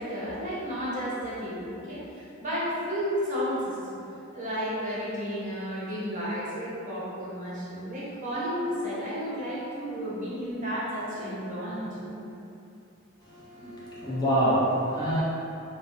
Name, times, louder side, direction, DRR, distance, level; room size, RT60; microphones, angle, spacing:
voice 1, 0.0-4.0 4.3-12.2, equal, 40° right, -9 dB, 0.7 m, -32 dB
voice 2, 13.2-15.2, right 1 dB, 20° left, -8 dB, 0.4 m, -26 dB
2.6 x 2.0 x 2.5 m, 2.6 s
head